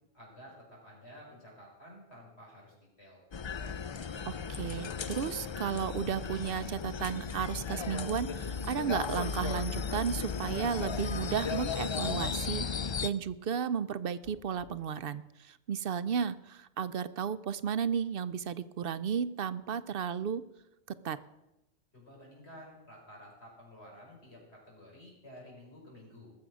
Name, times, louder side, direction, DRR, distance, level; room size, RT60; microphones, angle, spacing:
voice 1, 0.1-3.2 21.9-26.3, equal, 85° left, -3 dB, 6.2 m, -52 dB
sound 1, 3.3-13.1, left 6 dB, 45° left, 0.4 m, -35 dB
voice 2, 4.3-12.7 13.0-20.4 21.0-21.2, right 7 dB, 65° right, 14 dB, 0.8 m, -33 dB
sound 2, 14.2-15.0, left 1 dB, 60° left, 3.6 m, -56 dB
20.0 x 7.7 x 6.2 m, 0.94 s
omnidirectional pair, 1.1 m